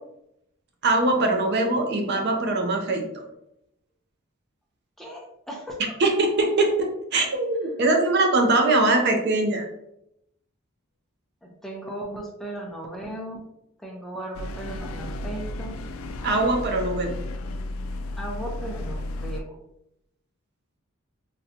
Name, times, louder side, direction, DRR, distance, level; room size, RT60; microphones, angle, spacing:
voice 1, 0.8-3.0 6.0-9.7 16.2-17.2, right 2 dB, 55° right, 3 dB, 0.5 m, -22 dB
voice 2, 5.0-5.8 11.4-13.4 13.8-15.7 18.2-19.6, right 1 dB, ahead, -1 dB, 0.5 m, -36 dB
sound 1, 14.3-19.4, left 1 dB, 80° left, 0.3 m, -33 dB
3.8 x 2.2 x 2.7 m, 0.80 s
head